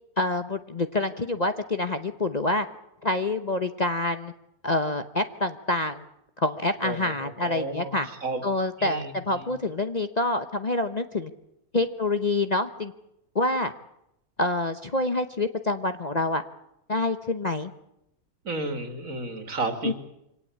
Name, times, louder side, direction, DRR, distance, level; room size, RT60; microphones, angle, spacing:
voice 1, 0.2-2.6 3.0-4.3 4.6-6.0 6.4-8.1 8.4-11.3 11.7-12.9 13.3-13.7 14.4-16.4 16.9-17.7 19.8-19.9, left 2 dB, 30° left, 9 dB, 1.0 m, -27 dB
voice 2, 6.8-8.4 8.8-9.4 18.4-19.9, right 2 dB, 65° right, 8 dB, 3.0 m, -32 dB
25.5 x 17.5 x 8.6 m, 0.83 s
omnidirectional pair, 1.5 m